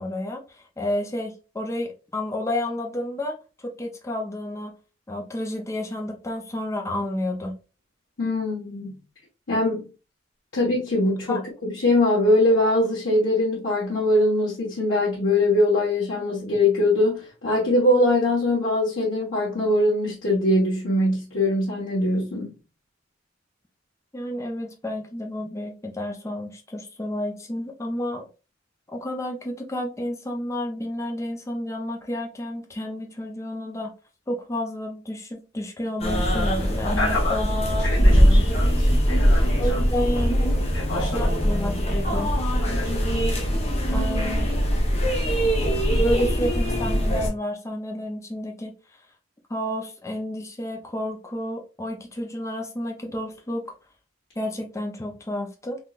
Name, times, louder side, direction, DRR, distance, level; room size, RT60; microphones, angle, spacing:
voice 1, 0.0-4.7 5.1-7.5 11.3-11.4 24.1-28.3 28.9-33.9 34.3-37.6 38.0-38.4 39.6-40.6 41.0-42.3 43.9-44.5 45.9-49.0 49.5-53.6 54.4-55.8, left 1 dB, 15° left, 0.5 m, -31 dB
voice 2, 8.2-9.0 9.5-9.8 10.5-22.5 37.0-37.4 37.8-39.8 40.7-41.3 42.1-42.2 42.6-42.9, left 1 dB, 90° left, 1.3 m, -22 dB
sound 1, 36.0-47.3, equal, 35° left, 0.9 m, -21 dB
3.7 x 3.1 x 2.4 m
head